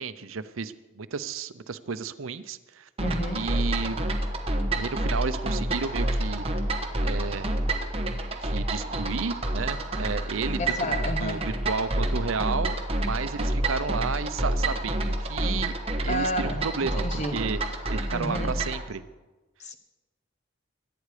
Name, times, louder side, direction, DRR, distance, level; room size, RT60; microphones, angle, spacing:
voice 1, 0.0-2.9 3.3-4.0 4.7-6.5 7.0-7.5 8.4-10.6 11.2-12.8 13.0-15.8 16.0-17.0 17.3-17.6 17.9-19.0, right 5 dB, 85° right, 13 dB, 0.7 m, -32 dB
voice 2, 3.0-3.5 10.6-11.5 16.1-17.4 18.1-18.6 19.6-19.7, equal, 35° left, 7 dB, 1.3 m, -31 dB
sound 1, 3.0-18.8, right 1 dB, 30° right, 1.3 m, -28 dB
22.5 x 9.4 x 5.0 m, 1.2 s
head